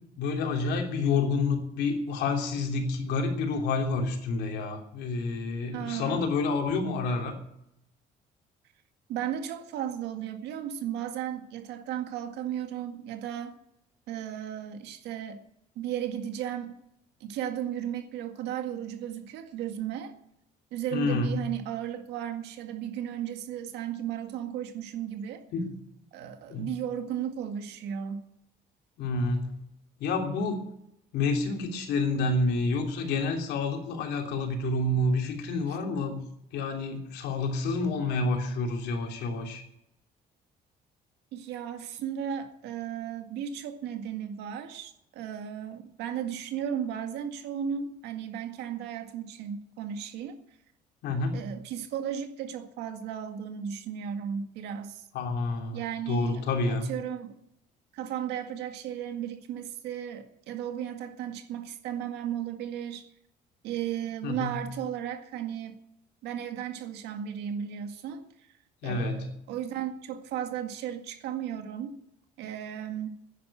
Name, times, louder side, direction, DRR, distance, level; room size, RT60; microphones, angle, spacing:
voice 1, 0.2-7.3 20.9-21.4 25.5-25.7 26.5-26.7 29.0-29.6 30.0-30.6 31.1-36.2 36.5-39.6 51.0-51.4 55.1-56.8 64.2-64.6 68.8-69.3, left 3 dB, 80° left, 3 dB, 3.3 m, -29 dB
voice 2, 5.7-6.2 9.1-13.5 14.1-15.4 15.8-16.8 17.2-20.1 20.7-25.4 26.1-28.3 35.7-35.8 41.3-50.4 51.3-55.0 55.7-57.4 57.9-63.1 63.6-65.8 66.2-68.2 68.8-72.0 72.4-73.2, right 9 dB, 85° right, 6 dB, 1.9 m, -35 dB
10.5 x 10.0 x 8.9 m, 0.77 s
cardioid pair, 110°, 17 cm